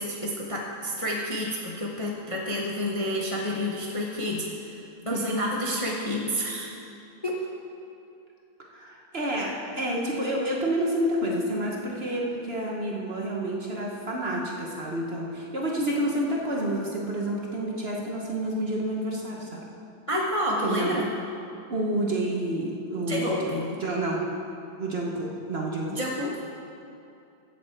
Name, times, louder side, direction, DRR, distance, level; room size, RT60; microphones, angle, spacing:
voice 1, 0.0-4.8 5.1-6.7 7.2-7.4 20.1-21.1 23.1-23.7 25.9-26.4, equal, 25° left, -3 dB, 0.8 m, -29 dB
voice 2, 8.7-19.6 20.6-21.0 21.7-23.5 23.8-24.2 24.8-26.0, right 1 dB, 40° right, -2 dB, 1.1 m, -29 dB
15.0 x 7.3 x 4.4 m, 2.6 s
omnidirectional pair, 1.8 m